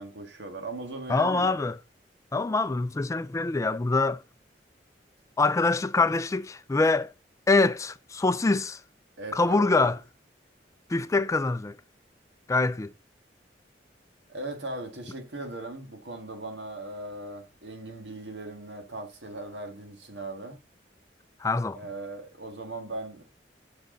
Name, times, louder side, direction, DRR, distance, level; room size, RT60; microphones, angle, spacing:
voice 1, 0.0-1.6 9.2-9.9 14.3-20.6 21.7-23.2, right 2 dB, 80° right, 1.7 m, -38 dB
voice 2, 1.1-1.8 2.3-4.2 5.4-7.1 7.5-8.8 9.3-10.0 10.9-11.8 12.5-12.9 21.4-21.8, left 3 dB, 20° left, 0.3 m, -24 dB
7.7 x 6.2 x 3.8 m
head